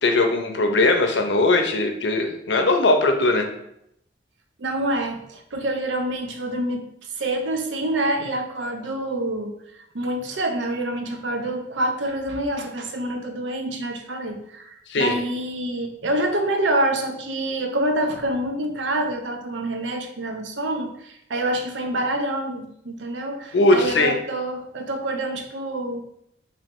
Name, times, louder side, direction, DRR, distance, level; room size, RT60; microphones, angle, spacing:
voice 1, 0.0-3.5 14.9-15.2 23.5-24.2, left 2 dB, 70° left, 5 dB, 0.6 m, -19 dB
voice 2, 4.6-26.0, right 1 dB, 80° right, 5 dB, 0.6 m, -27 dB
3.1 x 2.7 x 4.4 m, 0.75 s
head